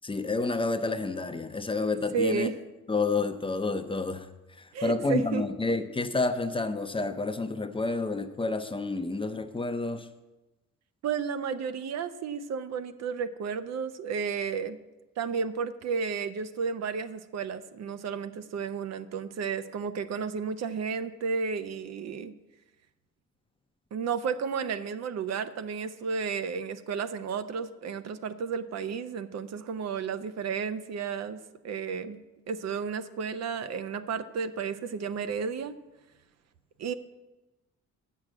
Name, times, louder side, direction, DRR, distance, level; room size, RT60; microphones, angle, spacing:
voice 1, 0.0-2.5 2.9-4.3 4.6-10.1, left 3 dB, 20° left, 8 dB, 0.6 m, -29 dB
voice 2, 2.1-2.5 4.7-5.4 11.0-14.8 15.2-22.3 23.9-31.4 31.6-32.2 32.5-35.8 36.8-36.9, right 6 dB, 60° right, 11 dB, 0.6 m, -32 dB
7.2 x 6.5 x 7.7 m, 1.1 s
cardioid pair, 90°, 30 cm